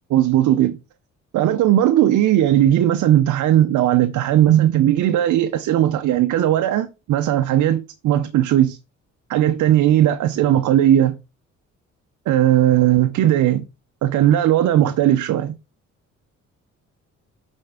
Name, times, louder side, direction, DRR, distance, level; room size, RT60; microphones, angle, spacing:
voice 1, 0.1-0.8 1.3-8.8 9.3-11.1 12.3-13.7 14.0-15.6, right 12 dB, 75° right, 0.7 m, -17 dB
9.0 x 4.5 x 3.7 m
cardioid pair, 90°, 30 cm